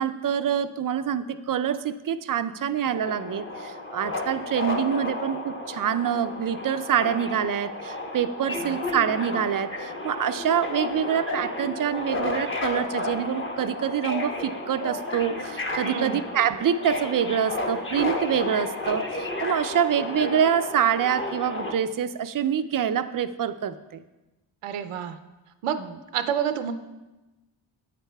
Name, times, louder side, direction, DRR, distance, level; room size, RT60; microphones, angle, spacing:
voice 1, 0.0-24.0, right 8 dB, 45° right, 11 dB, 0.4 m, -26 dB
Subway metro underground, 2.9-21.7, left 2 dB, 25° left, 1.0 m, -32 dB
voice 2, 15.8-16.2 24.6-25.2 25.6-25.8 26.1-26.7, right 8 dB, 85° right, 10 dB, 0.6 m, -28 dB
9.0 x 8.7 x 2.2 m, 1.1 s
cardioid pair, 55°, 50 cm